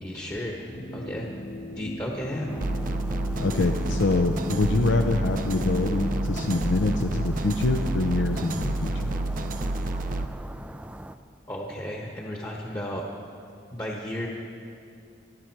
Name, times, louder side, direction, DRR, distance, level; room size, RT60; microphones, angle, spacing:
voice 1, 0.0-1.3 1.7-2.6 11.5-13.0 13.7-14.3, equal, 20° left, -1 dB, 1.2 m, -33 dB
sound 1, 0.7-10.3, left 2 dB, 50° left, 0.8 m, -36 dB
sound 2, 2.5-11.2, right 1 dB, 5° right, 0.3 m, -42 dB
sound 3, 2.6-10.2, right 2 dB, 45° right, 0.6 m, -29 dB
voice 2, 3.4-9.1, left 3 dB, 75° left, 5 dB, 0.6 m, -25 dB
24.0 x 11.5 x 4.6 m, 2.5 s
head